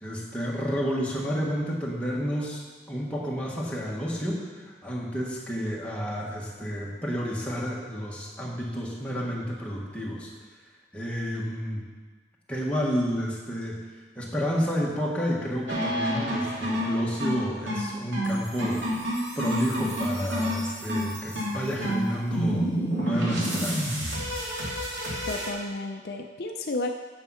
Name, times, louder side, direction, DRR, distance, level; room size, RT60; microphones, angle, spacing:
voice 1, 0.0-2.6 2.9-10.3 10.9-11.8 12.5-13.8 14.1-22.7 23.0-23.9, equal, 5° left, -4 dB, 1.5 m, -30 dB
sound 1, 15.7-25.5, equal, 85° right, 2.8 m, -29 dB
voice 2, 25.3-26.9, left 2 dB, 55° left, 3 dB, 0.5 m, -32 dB
8.7 x 7.3 x 5.6 m, 1.4 s
head